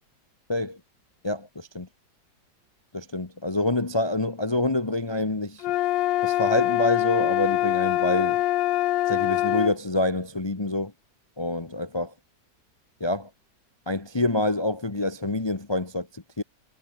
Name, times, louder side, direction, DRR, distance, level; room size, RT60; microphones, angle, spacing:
voice 1, 1.2-1.9 2.9-5.6 6.2-8.4 9.1-10.9 11.4-12.1 13.0-13.3 13.9-16.4, left 2 dB, 20° left, 1.0 m, -27 dB
sound 1, 5.6-9.8, left 15 dB, 80° left, 1.3 m, -24 dB
omnidirectional pair, 2.0 m